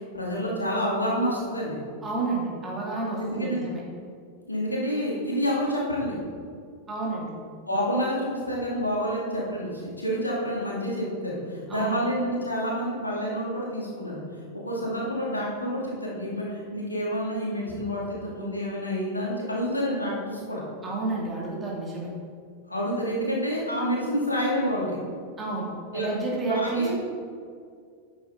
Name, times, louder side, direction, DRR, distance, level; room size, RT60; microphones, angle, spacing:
voice 1, 0.1-1.8 3.2-3.6 4.5-6.1 7.7-14.2 14.6-20.6 22.7-24.9 25.9-26.2 26.5-26.9, equal, 80° left, -4 dB, 2.4 m, -28 dB
voice 2, 2.0-3.8 6.9-7.3 11.7-12.0 20.8-22.1 25.4-26.9, right 3 dB, 20° right, -5 dB, 2.7 m, -30 dB
10.5 x 7.8 x 3.9 m, 2.2 s
figure-of-eight pair, 90°, 0 cm